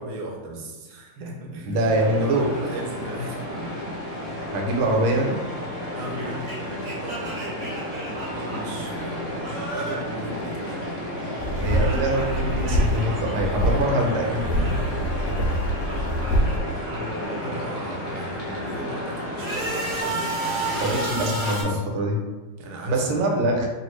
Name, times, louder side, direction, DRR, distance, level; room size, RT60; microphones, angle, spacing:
voice 1, 0.0-1.8 2.2-3.6 5.9-7.3 8.3-10.8 16.9-20.2 21.7-21.8 22.6-23.1, right 1 dB, 65° right, -1 dB, 1.0 m, -36 dB
voice 2, 1.6-2.5 4.5-5.4 11.6-14.7 20.8-22.2 22.8-23.7, right 1 dB, 90° right, 1 dB, 1.5 m, -24 dB
sound 1, 1.9-20.8, left 1 dB, 60° left, 1.2 m, -32 dB
sound 2, 3.1-11.1 11.4-15.1 15.4-18.1 18.6-21.6, right 2 dB, 45° right, 0.9 m, -35 dB
sound 3, 11.4-13.1 13.4-13.8 14.3-16.6, equal, 75° left, 1.0 m, -24 dB
3.2 x 2.4 x 3.1 m, 1.3 s
omnidirectional pair, 2.3 m